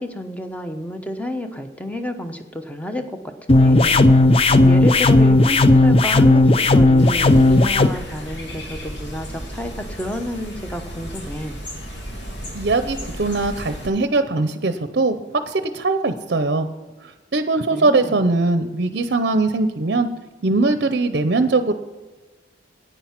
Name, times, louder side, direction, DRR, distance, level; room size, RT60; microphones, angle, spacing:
voice 1, 0.0-4.2 4.5-11.6 17.7-18.2, left 1 dB, 10° left, 7 dB, 0.9 m, -30 dB
sound 1, 3.5-7.9, left 2 dB, 30° left, 0.4 m, -14 dB
sound 2, 7.0-13.9, equal, 85° left, 2.8 m, -34 dB
voice 2, 12.5-15.2 15.5-16.7 17.0-20.1 20.4-21.7, right 3 dB, 55° right, 9 dB, 0.7 m, -21 dB
10.0 x 9.4 x 5.8 m, 1.2 s
head